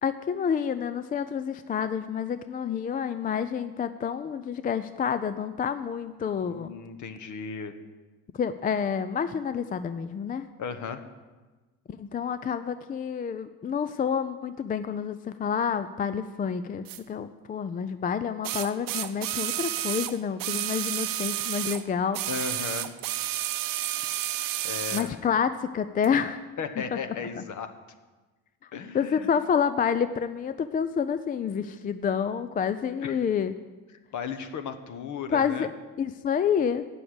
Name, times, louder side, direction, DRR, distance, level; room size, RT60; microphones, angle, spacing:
voice 1, 0.0-6.7 8.4-10.5 11.9-22.2 24.9-26.4 27.4-27.5 28.9-33.5 35.3-35.7 36.0-36.9, left 7 dB, 25° left, 12 dB, 0.3 m, -28 dB
voice 2, 6.5-7.7 10.6-11.0 22.3-22.9 24.3-25.2 26.6-27.7 28.7-29.3 33.0-33.2 34.1-35.7, left 6 dB, 50° left, 9 dB, 1.1 m, -35 dB
sound 1, 16.9-17.0 18.4-21.8 22.1-25.1 26.0-26.1, right 14 dB, 60° right, 0.7 m, -31 dB
8.6 x 6.9 x 7.9 m, 1.2 s
supercardioid pair, 85°, 38 cm